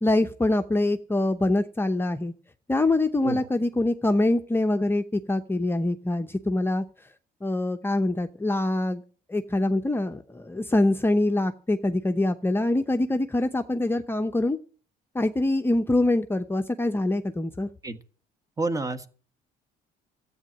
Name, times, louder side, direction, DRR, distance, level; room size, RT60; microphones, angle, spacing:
voice 1, 0.0-2.3 2.7-6.8 7.4-9.0 9.3-14.6 15.1-17.7, left 2 dB, 15° left, 6 dB, 0.8 m, -24 dB
voice 2, 18.6-19.1, right 3 dB, 20° right, 10 dB, 1.5 m, -29 dB
13.5 x 8.6 x 8.7 m, 0.41 s
cardioid pair, 110°, 17 cm